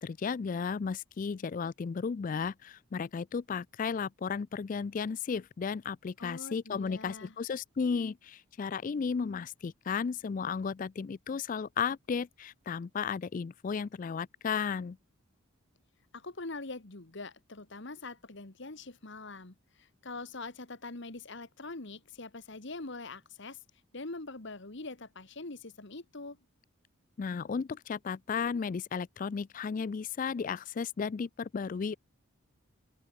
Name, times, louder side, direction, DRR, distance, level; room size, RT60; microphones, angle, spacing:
voice 1, 0.0-15.0 27.2-32.0, left 6 dB, 40° left, 0.3 m, -34 dB
voice 2, 6.2-7.3 16.1-23.6 23.9-26.4, left 3 dB, 55° left, 1.6 m, -43 dB
open air
head